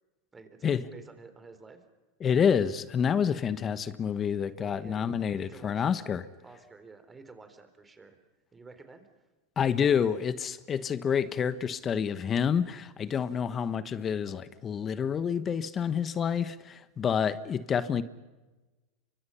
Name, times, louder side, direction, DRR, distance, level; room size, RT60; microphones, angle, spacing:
voice 1, 0.3-1.8 4.6-6.0 6.4-8.2 8.5-9.1, right 4 dB, 15° right, 9 dB, 3.7 m, -51 dB
voice 2, 2.2-6.2 9.6-18.0, left 7 dB, 30° left, 14 dB, 1.2 m, -28 dB
30.0 x 24.5 x 5.8 m, 1.2 s
hypercardioid pair, 110°, 0 cm